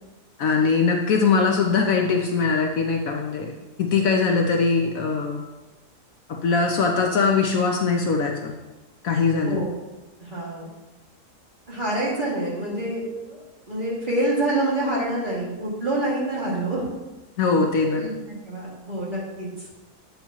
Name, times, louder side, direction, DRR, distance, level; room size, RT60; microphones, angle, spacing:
voice 1, 0.4-3.5 3.8-5.4 6.3-8.5 9.0-9.6 17.4-18.0, left 4 dB, 65° left, 2 dB, 1.1 m, -21 dB
voice 2, 10.2-10.7 11.7-13.4 13.7-16.8 17.9-18.1 18.5-19.5, right 1 dB, 30° right, -6 dB, 2.2 m, -26 dB
8.8 x 7.1 x 3.0 m, 1.1 s
omnidirectional pair, 1.7 m